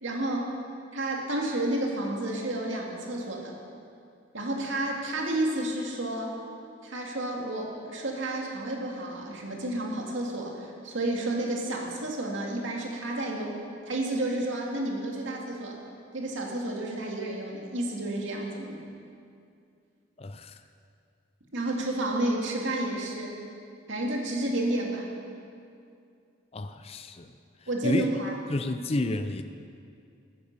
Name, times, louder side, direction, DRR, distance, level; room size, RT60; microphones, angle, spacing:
voice 1, 0.0-0.5 0.9-3.5 4.3-6.4 6.8-13.6 13.9-15.8 16.1-18.8 21.5-23.4 23.9-25.1 27.7-28.3, right 1 dB, 70° right, -1 dB, 2.3 m, -31 dB
voice 2, 20.2-20.6 26.5-27.3 27.8-28.1 28.5-29.4, left 2 dB, 30° left, 9 dB, 0.4 m, -30 dB
14.0 x 9.9 x 6.7 m, 2.4 s
head